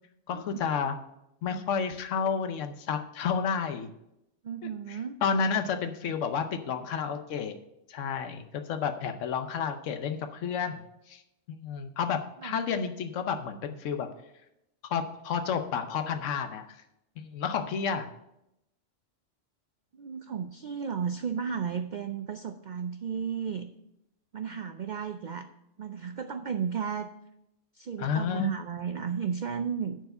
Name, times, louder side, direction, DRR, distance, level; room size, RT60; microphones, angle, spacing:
voice 1, 0.3-1.0 1.4-3.9 4.9-7.6 7.9-10.8 11.1-11.2 11.5-14.1 14.8-16.7 17.2-18.1 28.0-28.6, left 6 dB, 85° left, 7 dB, 1.1 m, -31 dB
voice 2, 4.4-5.2 12.4-12.6 19.9-23.7 24.3-25.5 25.8-27.1 27.7-30.0, right 7 dB, 60° right, 9 dB, 0.5 m, -34 dB
10.5 x 4.7 x 6.6 m, 0.83 s
omnidirectional pair, 1.3 m